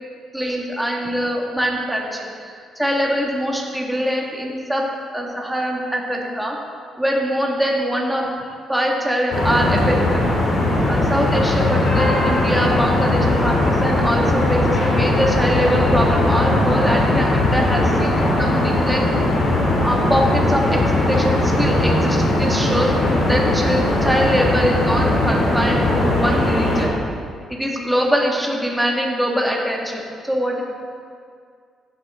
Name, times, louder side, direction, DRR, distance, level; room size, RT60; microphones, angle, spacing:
voice 1, 0.3-4.9 5.1-6.6 7.0-8.3 8.7-10.2 10.9-19.1 19.8-22.9 23.2-26.9 27.5-30.6, equal, 5° right, -1 dB, 2.0 m, -23 dB
sound 1, 9.3-26.8, left 1 dB, 60° left, 3.0 m, -19 dB
15.0 x 8.0 x 3.8 m, 2.2 s
cardioid pair, 90°, 0 cm